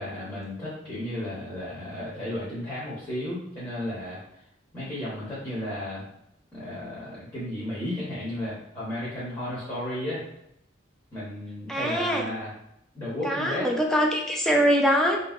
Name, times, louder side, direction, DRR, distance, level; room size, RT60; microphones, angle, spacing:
voice 1, 0.0-4.2 4.7-6.0 6.5-10.2 11.1-12.5 12.9-13.7, left 1 dB, 25° left, -10 dB, 0.9 m, -33 dB
voice 2, 11.7-12.2 13.2-15.2, equal, 5° left, 0 dB, 0.4 m, -23 dB
2.7 x 2.7 x 2.4 m, 0.78 s
head